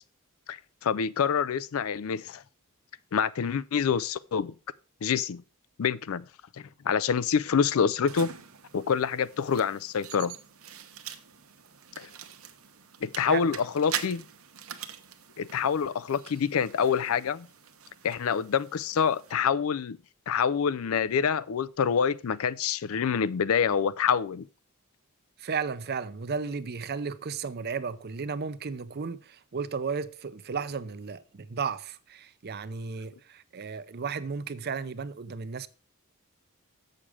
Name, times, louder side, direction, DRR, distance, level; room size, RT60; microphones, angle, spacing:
voice 1, 0.5-2.4 3.1-4.6 5.0-5.4 5.8-6.3 6.6-8.3 8.7-10.4 12.0-12.1 13.0-14.3 15.4-17.5 18.0-20.0 20.3-24.5, left 7 dB, 65° left, 0.4 m, -26 dB
sound 1, 8.1-19.3, right 9 dB, 65° right, 0.9 m, -43 dB
voice 2, 25.4-35.7, right 5 dB, 45° right, 0.6 m, -34 dB
7.4 x 6.6 x 4.8 m
head